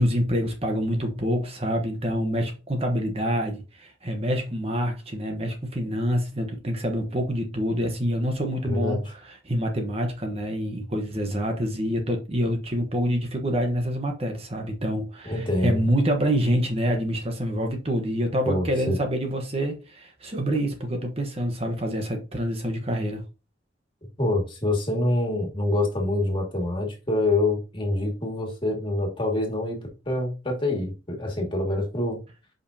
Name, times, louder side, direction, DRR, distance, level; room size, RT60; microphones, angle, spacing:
voice 1, 0.0-23.2, equal, 35° right, 1.2 m, -26 dB
voice 2, 8.6-9.0 15.3-15.8 18.4-19.0 24.2-29.8 30.1-32.2, left 2 dB, 25° left, 2.2 m, -26 dB
7.7 x 5.4 x 2.8 m
head